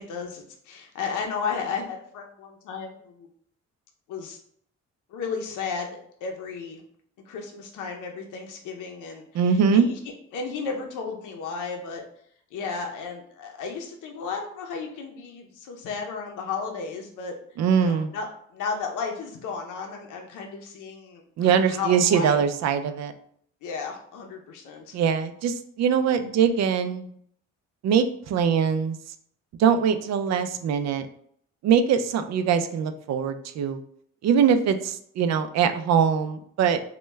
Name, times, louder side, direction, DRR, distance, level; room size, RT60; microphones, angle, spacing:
voice 1, 0.0-3.3 4.1-4.4 5.1-6.8 7.3-10.0 10.3-12.0 12.5-17.3 17.8-22.4 23.6-25.0, left 5 dB, 80° left, 2 dB, 0.6 m, -34 dB
voice 2, 9.3-9.9 17.6-18.1 21.4-23.1 24.9-27.1 27.8-29.0 29.6-31.1 31.6-33.8 34.2-36.8, right 7 dB, 60° right, 9 dB, 0.4 m, -22 dB
3.2 x 2.2 x 3.1 m, 0.64 s
cardioid pair, 90°, 30 cm